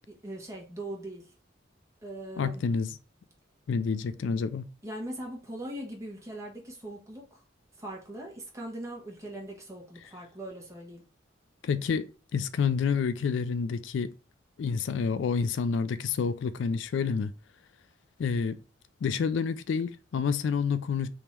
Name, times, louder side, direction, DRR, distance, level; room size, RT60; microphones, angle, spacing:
voice 1, 0.1-1.3 2.0-2.6 4.8-7.4 7.8-11.0, right 1 dB, 15° right, 1.3 m, -40 dB
voice 2, 2.4-3.0 3.7-4.7 11.6-14.1 14.6-17.3 18.2-18.6 19.0-21.1, left 5 dB, 75° left, 0.3 m, -28 dB
3.6 x 2.9 x 4.4 m
head